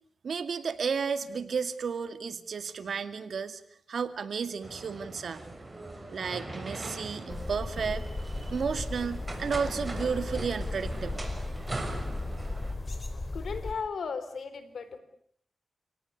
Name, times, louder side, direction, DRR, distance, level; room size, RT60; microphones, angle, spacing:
voice 1, 0.2-3.6 3.9-5.4 6.1-8.0 8.5-11.2, right 6 dB, 70° right, 11 dB, 2.2 m, -32 dB
sound 1, 4.6-12.7, right 2 dB, 25° right, 6.0 m, -40 dB
sound 2, 7.3-13.7, left 2 dB, 30° left, 4.3 m, -36 dB
voice 2, 13.3-15.0, left 5 dB, 75° left, 12 dB, 3.8 m, -36 dB
30.0 x 18.0 x 9.5 m, 0.66 s
cardioid pair, 75°, 0 cm